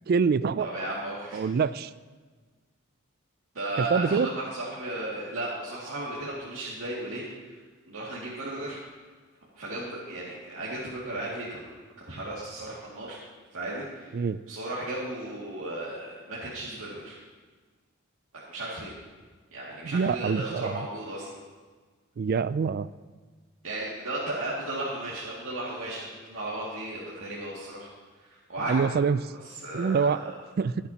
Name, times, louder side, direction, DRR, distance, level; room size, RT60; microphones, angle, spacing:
voice 1, 0.1-0.7 1.3-1.9 3.8-4.3 14.1-14.4 19.8-20.8 22.2-22.9 28.7-29.2 29.7-30.2 30.6-30.7, right 5 dB, 45° right, 16 dB, 0.3 m, -25 dB
voice 2, 0.6-1.4 3.5-7.6 7.9-8.8 9.5-13.2 13.5-14.2 14.5-17.2 18.5-18.9 19.5-21.4 23.6-27.9 28.2-28.9 29.3-30.4, right 1 dB, 70° right, -8 dB, 2.4 m, -35 dB
23.5 x 8.2 x 2.9 m, 1.4 s
head